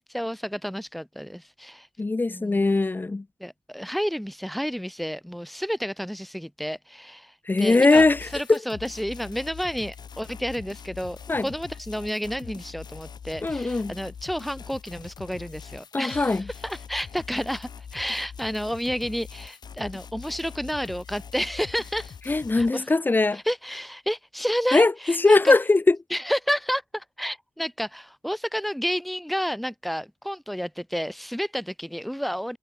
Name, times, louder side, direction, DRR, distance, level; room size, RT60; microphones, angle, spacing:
voice 1, 0.0-1.9 2.3-2.7 3.4-8.1 8.3-22.2 22.5-22.9 23.3-25.5 26.1-32.6, equal, ahead, 3.2 m, -31 dB
voice 2, 2.0-3.2 7.5-8.6 11.3-11.5 13.4-14.0 15.9-16.4 22.3-23.4 24.7-26.0, left 3 dB, 25° left, 6.0 m, -20 dB
sound 1, 7.9-22.7, left 7 dB, 65° left, 5.0 m, -43 dB
wide cardioid pair, 120°, 8 cm